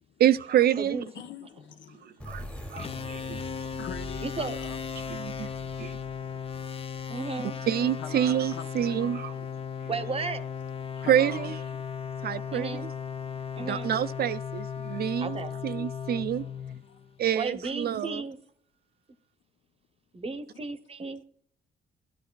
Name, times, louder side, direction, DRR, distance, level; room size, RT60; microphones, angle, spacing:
voice 1, 0.2-1.0 2.3-2.4 2.7-3.4 5.1-5.5 5.8-6.0 7.7-9.4 11.1-11.6 12.2-12.9 13.6-15.4 15.6-16.4 17.2-18.2, right 10 dB, 55° right, 0.4 m, -27 dB
voice 2, 1.1-2.5 3.8-4.8 7.5-7.6 8.0-8.7 9.3-9.5 11.0-11.7 16.3-16.4 16.9-17.0 17.9-18.0, left 8 dB, 70° left, 0.7 m, -43 dB
sound 1, 2.2-7.7, equal, 5° left, 1.0 m, -44 dB
sound 2, 2.8-17.3, left 7 dB, 30° left, 0.4 m, -36 dB
voice 3, 4.2-4.6 7.1-7.5 9.9-10.4 12.5-12.8 13.6-13.9 15.2-15.5 17.3-18.4 20.1-21.2, right 4 dB, 30° right, 0.8 m, -34 dB
12.0 x 11.5 x 2.3 m
cardioid pair, 90°, 20 cm